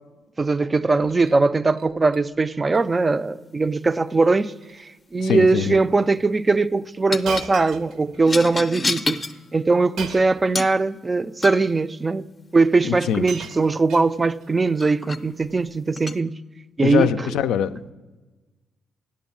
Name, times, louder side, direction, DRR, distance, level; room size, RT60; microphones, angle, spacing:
voice 1, 0.4-9.2 9.5-12.3 12.5-16.4 16.8-17.3, right 3 dB, 25° right, 0.3 m, -20 dB
Shatter, 0.9-1.4 1.7-2.2 2.5-2.8 3.1-3.2 4.0-4.3 4.6-4.9 5.6-5.7 7.2-8.4 10.0-10.5 11.5-11.6 12.6-12.7 13.0-14.5 15.4-15.7, right 6 dB, 80° right, 0.6 m, -38 dB
voice 2, 5.2-5.8 12.8-13.2 16.8-17.9, left 9 dB, 85° left, 0.4 m, -23 dB
sound 1, 5.2-5.5 7.1-7.5 8.2-9.4 10.6-10.8 11.4-11.7 14.1-14.2 14.8-15.2 16.0-16.2, left 3 dB, 30° left, 0.5 m, -29 dB
8.5 x 7.1 x 7.2 m
cardioid pair, 90°, 0 cm